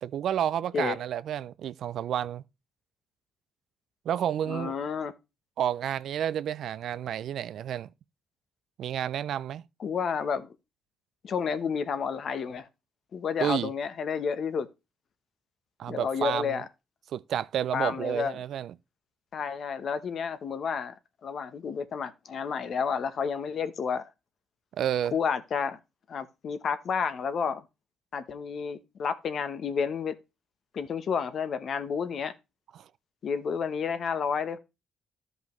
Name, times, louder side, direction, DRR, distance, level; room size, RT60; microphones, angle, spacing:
voice 1, 0.0-2.4 4.1-4.7 5.6-7.9 8.8-9.6 13.4-13.7 15.8-16.6 17.1-18.7 24.8-25.2 32.7-32.8, right 10 dB, 70° right, 0.4 m, -30 dB
voice 2, 4.5-5.1 9.8-10.5 11.2-12.7 13.1-14.7 15.9-16.6 17.7-18.3 19.3-20.9 21.2-24.1 25.1-25.8 26.1-27.7 28.1-30.1 30.7-32.3 33.2-34.6, left 6 dB, 55° left, 0.9 m, -30 dB
12.5 x 5.4 x 3.1 m
cardioid pair, 90°, 0 cm